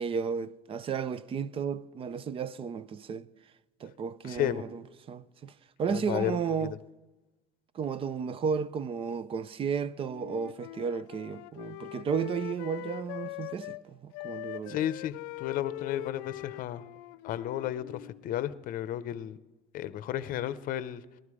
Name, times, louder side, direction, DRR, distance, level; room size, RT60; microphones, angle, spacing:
voice 1, 0.0-3.3 3.8-4.8 5.1-5.5 5.8-6.7 7.7-14.8, right 6 dB, 30° right, 0.5 m, -33 dB
voice 2, 4.2-4.6 5.9-6.8 14.7-16.8 17.2-19.4 19.7-21.0, left 11 dB, 50° left, 0.7 m, -33 dB
Wind instrument woodwind instrument, 10.1-13.8 14.1-18.2, left 18 dB, 85° left, 0.4 m, -42 dB
18.5 x 12.5 x 4.9 m
cardioid pair, 135°, 18 cm